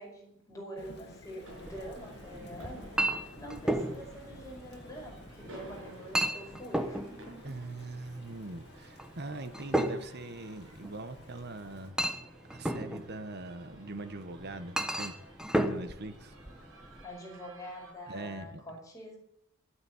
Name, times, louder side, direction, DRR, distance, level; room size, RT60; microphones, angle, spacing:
voice 1, 0.0-7.5 17.0-19.2, equal, 15° left, -1 dB, 5.3 m, -46 dB
Thunder / Rain, 0.8-11.9, left 2 dB, 50° left, 2.0 m, -54 dB
sound 1, 1.4-17.9, right 1 dB, 65° right, 6.7 m, -54 dB
Chink clink, 1.5-17.0, right 1 dB, 5° right, 1.0 m, -36 dB
voice 2, 7.4-12.0 12.5-15.1 15.6-16.3 18.1-18.8, right 2 dB, 50° right, 10 dB, 1.3 m, -42 dB
11.5 x 9.2 x 9.7 m, 0.76 s
head